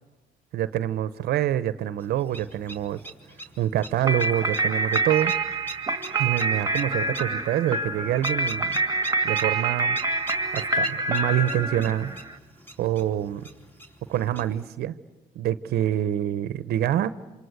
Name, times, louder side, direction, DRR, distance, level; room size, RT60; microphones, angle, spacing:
voice 1, 0.5-3.0 3.6-5.3 6.2-8.8 9.2-10.0 10.5-12.1 12.8-13.5 14.1-15.0 15.4-17.1, right 12 dB, 70° right, 14 dB, 0.9 m, -26 dB
sound 1, 2.0-14.7, right 1 dB, 10° left, 3.2 m, -42 dB
sound 2, 4.0-12.4, right 3 dB, 20° right, 1.8 m, -26 dB
28.0 x 26.5 x 8.0 m, 1.1 s
cardioid pair, 110°, 17 cm